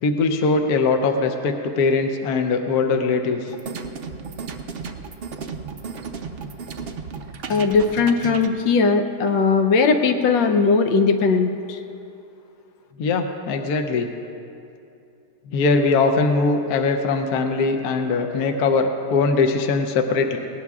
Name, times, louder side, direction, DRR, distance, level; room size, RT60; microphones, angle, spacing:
voice 1, 0.0-3.5 13.0-14.1 15.5-20.4, left 4 dB, 65° left, 5 dB, 1.1 m, -21 dB
sound 1, 3.5-8.5, right 5 dB, 90° right, 0.5 m, -34 dB
voice 2, 7.5-11.8, left 4 dB, 85° left, 5 dB, 1.5 m, -19 dB
19.5 x 18.0 x 2.4 m, 2.7 s
omnidirectional pair, 2.0 m